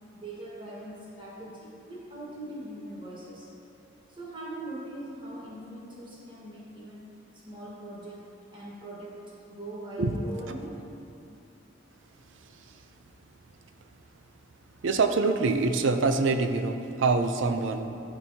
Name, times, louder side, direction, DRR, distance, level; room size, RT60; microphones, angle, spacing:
voice 1, 0.1-3.5 4.1-10.8, right 1 dB, 25° right, -6 dB, 1.4 m, -41 dB
voice 2, 14.8-18.0, right 3 dB, 90° right, 7 dB, 0.5 m, -25 dB
12.0 x 4.6 x 2.8 m, 2.8 s
head